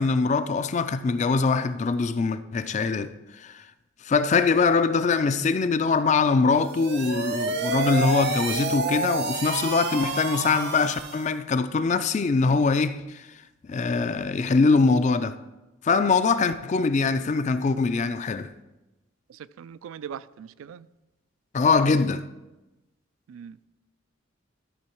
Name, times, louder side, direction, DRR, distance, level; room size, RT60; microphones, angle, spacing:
voice 1, 0.0-3.6 4.0-13.2 13.7-15.4 15.8-18.5 21.5-22.2, left 4 dB, 35° left, 0.3 m, -23 dB
sound 1, 6.5-11.3, right 3 dB, 55° right, 0.8 m, -29 dB
voice 2, 19.6-20.8 23.3-23.6, right 8 dB, 85° right, 0.3 m, -40 dB
12.5 x 4.6 x 4.4 m
head